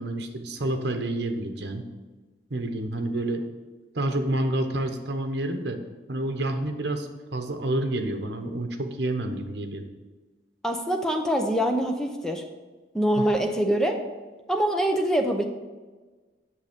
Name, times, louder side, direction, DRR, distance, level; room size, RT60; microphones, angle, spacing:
voice 1, 0.0-1.9 2.5-3.4 3.9-5.8 6.1-9.8 13.2-13.3, right 1 dB, 65° right, 6 dB, 1.0 m, -29 dB
voice 2, 10.6-12.4 12.9-14.0 14.5-15.4, right 1 dB, 5° left, 3 dB, 0.8 m, -24 dB
8.1 x 7.0 x 5.2 m, 1.3 s
head